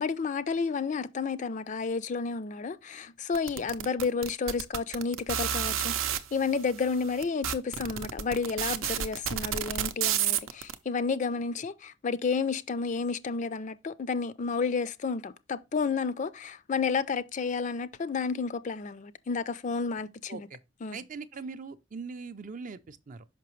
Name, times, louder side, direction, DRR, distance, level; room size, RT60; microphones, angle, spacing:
voice 1, 0.0-20.5 20.8-21.0, left 5 dB, 40° left, 0.4 m, -31 dB
sound 1, 3.4-6.2 6.9-7.0 7.2-10.7, right 10 dB, 90° right, 0.6 m, -30 dB
voice 2, 20.3-20.6 20.9-23.2, right 4 dB, 40° right, 0.4 m, -41 dB
5.9 x 5.5 x 3.1 m
head